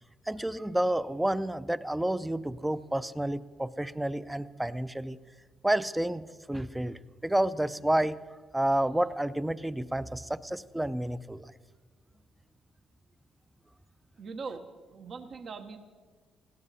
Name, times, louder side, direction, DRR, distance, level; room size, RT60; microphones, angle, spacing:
voice 1, 0.3-5.2 5.6-8.2 8.5-11.4, right 1 dB, 10° right, 15 dB, 0.5 m, -30 dB
voice 2, 14.2-15.8, right 4 dB, 55° right, 6 dB, 1.1 m, -41 dB
20.0 x 16.5 x 4.1 m, 1.5 s
cardioid pair, 90°, 0 cm